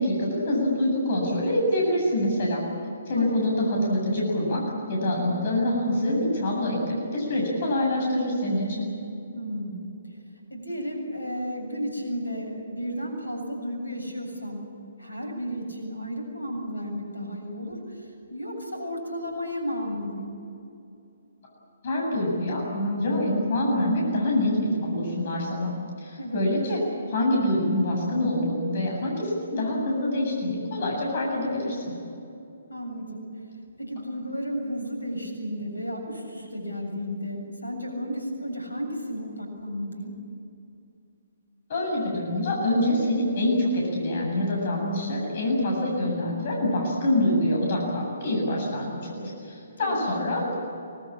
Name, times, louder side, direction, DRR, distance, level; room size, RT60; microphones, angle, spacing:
voice 1, 0.0-2.6 3.1-4.6 4.9-8.9 21.8-25.7 26.0-26.8 27.1-31.9 41.7-50.5, left 1 dB, 50° left, -1 dB, 7.9 m, -25 dB
voice 2, 3.1-3.6 9.3-9.8 10.5-14.7 15.0-20.3 26.2-26.4 32.7-33.4 33.8-40.2 49.8-50.1, equal, 85° left, 3 dB, 7.4 m, -33 dB
25.0 x 19.5 x 8.8 m, 2.7 s
figure-of-eight pair, 135°, 0 cm